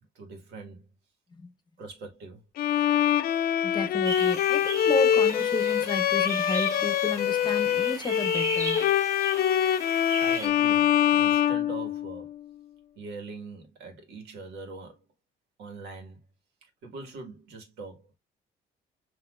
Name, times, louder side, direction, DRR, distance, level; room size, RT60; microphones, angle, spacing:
voice 1, 0.2-0.8 1.8-2.4 10.2-12.3 13.0-15.0 15.6-16.2 16.6-18.1, right 3 dB, 80° right, 1.9 m, -42 dB
Bowed string instrument, 2.6-12.4, left 10 dB, 60° left, 0.5 m, -24 dB
voice 2, 3.6-8.8, left 3 dB, 25° left, 0.9 m, -32 dB
sound 1, 4.0-10.5, right 2 dB, 20° right, 1.2 m, -37 dB
5.9 x 3.1 x 2.4 m
cardioid pair, 110°, 17 cm